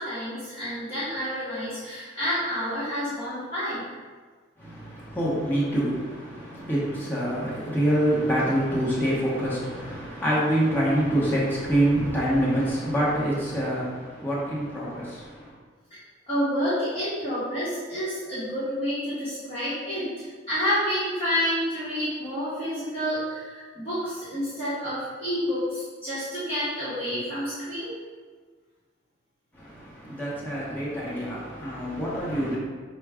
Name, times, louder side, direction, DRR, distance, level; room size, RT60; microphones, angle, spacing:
voice 1, 0.0-3.8 16.3-27.9, equal, 30° left, -13 dB, 1.4 m, -29 dB
voice 2, 4.6-15.5 29.5-32.6, right 1 dB, 10° left, -8 dB, 0.9 m, -26 dB
5.9 x 2.3 x 3.5 m, 1.5 s
head